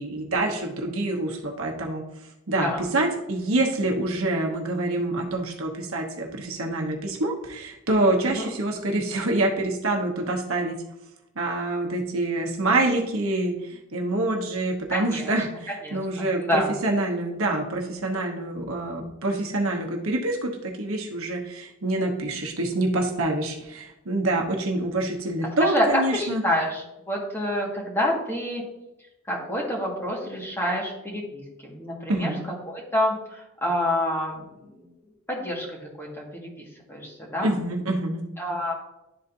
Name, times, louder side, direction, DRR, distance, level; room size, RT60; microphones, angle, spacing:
voice 1, 0.0-2.0 2.5-10.8 11.4-26.4 32.1-32.4 37.4-38.2, right 2 dB, 75° right, 2 dB, 1.1 m, -26 dB
voice 2, 14.9-15.3 15.7-16.7 25.6-28.6 29.3-32.3 32.7-34.9 35.3-37.5 38.4-38.7, left 1 dB, 10° left, -3 dB, 1.7 m, -28 dB
11.5 x 4.0 x 2.7 m, 0.92 s
head